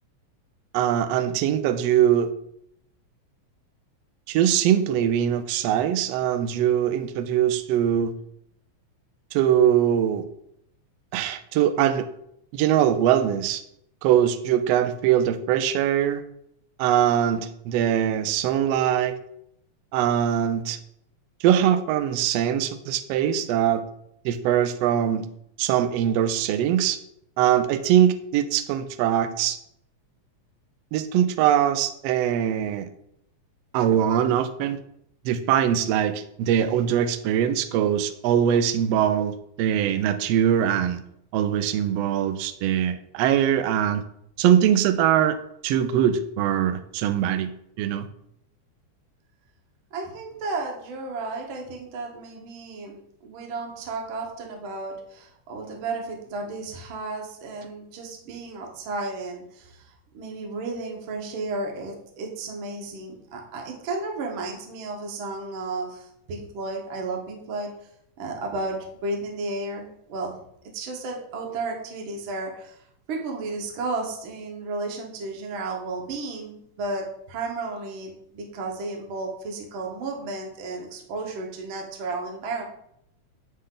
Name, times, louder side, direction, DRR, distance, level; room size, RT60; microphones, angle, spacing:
voice 1, 0.7-2.3 4.3-8.1 9.3-10.3 11.1-12.1 12.5-13.6 14.0-16.2 16.8-19.1 19.9-20.8 21.4-23.8 24.2-25.2 25.6-27.0 27.4-29.6 30.9-32.9 33.7-34.8 35.2-41.0 41.3-44.0 44.4-45.4 45.6-47.5 47.8-48.0, right 10 dB, 90° right, 10 dB, 1.4 m, -22 dB
voice 2, 49.9-67.9 68.2-70.4 70.7-82.6, right 3 dB, 55° right, 1 dB, 1.5 m, -33 dB
9.4 x 3.4 x 3.8 m, 0.74 s
omnidirectional pair, 3.4 m